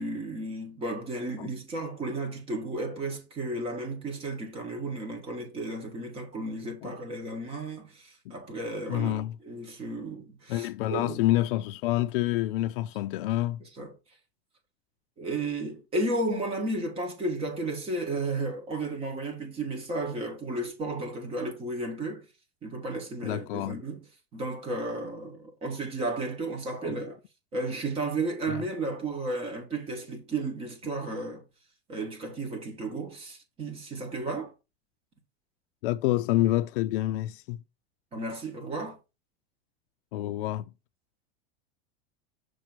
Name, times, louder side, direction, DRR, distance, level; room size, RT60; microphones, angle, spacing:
voice 1, 0.0-11.2 13.8-13.9 15.2-22.3 22.6-24.0 24.3-27.2 27.5-31.4 31.9-34.5 38.1-39.0, right 2 dB, 20° right, 1.5 m, -33 dB
voice 2, 8.9-9.3 10.5-13.6 23.2-23.8 26.8-26.9 28.5-28.6 35.8-37.6 40.1-40.7, left 15 dB, 60° left, 0.4 m, -28 dB
6.7 x 3.1 x 5.9 m
supercardioid pair, 175°, 31 cm